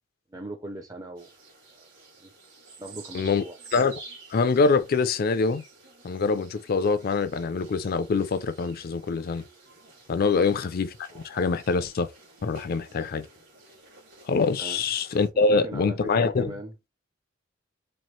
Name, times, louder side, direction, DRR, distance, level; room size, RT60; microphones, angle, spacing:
voice 1, 0.3-1.3 1.7-1.9 2.2-2.3 2.8-3.6 14.6-14.8 15.3-16.7, right 2 dB, 20° right, 0.4 m, -39 dB
sound 1, 1.2-15.3, right 3 dB, 75° right, 2.4 m, -50 dB
voice 2, 4.3-5.6 6.0-9.4 10.1-12.1 12.4-13.3 14.2-16.5, left 4 dB, 50° left, 0.4 m, -24 dB
4.3 x 2.4 x 3.0 m
head